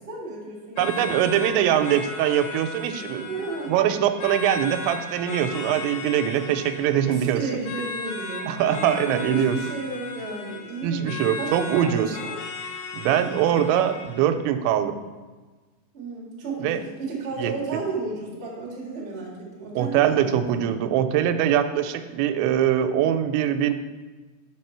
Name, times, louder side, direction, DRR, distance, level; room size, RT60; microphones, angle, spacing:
voice 1, 0.1-1.8 3.2-3.8 7.0-12.4 15.9-20.6, right 3 dB, 55° right, -4 dB, 0.6 m, -33 dB
sound 1, 0.8-14.4, left 4 dB, 85° left, 2.9 m, -36 dB
voice 2, 0.8-3.3 3.7-7.4 8.5-9.6 10.8-12.2 12.9-14.9 16.6-16.8 17.4-17.5 19.8-23.7, right 10 dB, 90° right, 9 dB, 2.9 m, -22 dB
7.5 x 6.0 x 4.4 m, 1.3 s
omnidirectional pair, 5.1 m